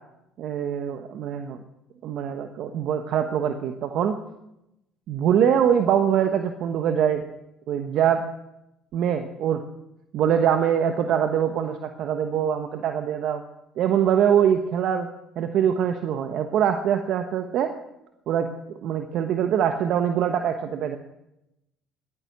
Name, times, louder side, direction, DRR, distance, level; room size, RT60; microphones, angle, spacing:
voice 1, 0.4-1.6 2.0-4.2 5.1-7.2 7.7-8.2 8.9-9.6 10.1-13.4 13.8-15.1 15.4-17.7 18.3-21.0, right 9 dB, 65° right, 7 dB, 1.2 m, -23 dB
16.0 x 12.0 x 7.4 m, 0.87 s
supercardioid pair, 70°, 0 cm